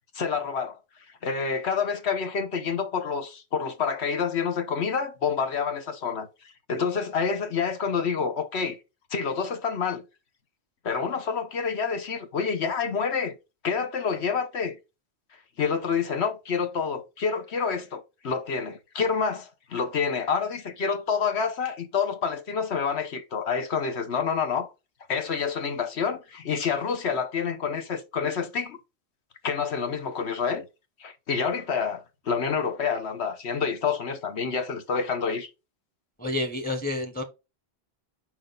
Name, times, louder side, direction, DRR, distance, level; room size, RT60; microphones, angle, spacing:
voice 1, 0.1-0.8 1.2-6.3 6.7-8.8 9.1-10.0 10.8-13.4 13.6-14.8 15.6-24.7 25.1-28.8 29.4-30.6 31.0-35.5, left 6 dB, 85° left, 1.3 m, -28 dB
voice 2, 36.2-37.2, left 2 dB, 10° left, 0.9 m, -29 dB
6.3 x 4.6 x 3.9 m
omnidirectional pair, 1.1 m